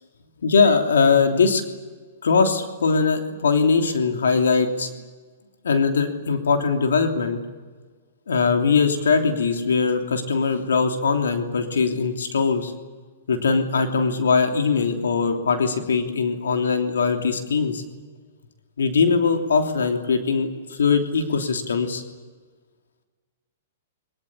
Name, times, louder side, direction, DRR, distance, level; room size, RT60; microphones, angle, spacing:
voice 1, 0.4-1.6 2.2-4.9 5.6-7.4 8.3-12.7 13.3-17.8 18.8-20.5 20.8-22.0, left 5 dB, 90° left, 4 dB, 3.1 m, -21 dB
23.0 x 22.0 x 9.9 m, 1.4 s
hypercardioid pair, 135°, 0 cm